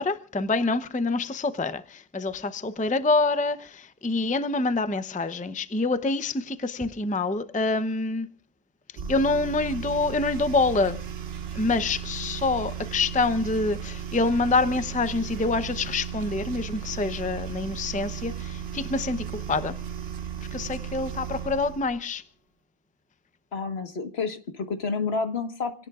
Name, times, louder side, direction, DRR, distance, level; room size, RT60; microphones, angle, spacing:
voice 1, 0.0-8.3 9.1-11.0 11.5-19.8 20.5-22.2, left 3 dB, 10° left, 0.6 m, -26 dB
sound 1, 9.0-21.9, right 8 dB, 65° right, 1.1 m, -35 dB
voice 2, 23.5-25.7, left 4 dB, 70° left, 1.8 m, -29 dB
28.5 x 18.0 x 2.4 m
omnidirectional pair, 1.1 m